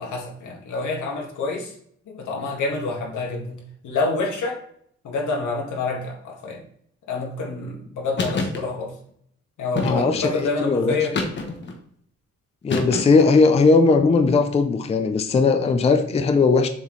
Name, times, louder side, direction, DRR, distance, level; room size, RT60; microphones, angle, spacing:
voice 1, 0.0-1.7 2.1-4.6 5.0-6.6 7.1-8.9 9.6-11.2, left 3 dB, 90° left, 0 dB, 1.7 m, -27 dB
sound 1, 8.2-8.6 9.8-10.3 11.1-11.8 12.7-13.3, left 3 dB, 40° left, 1.0 m, -27 dB
voice 2, 9.8-10.3 10.6-10.9 12.6-16.7, left 4 dB, 20° left, 7 dB, 0.4 m, -18 dB
7.1 x 4.2 x 3.2 m, 0.65 s
wide cardioid pair, 170°, 29 cm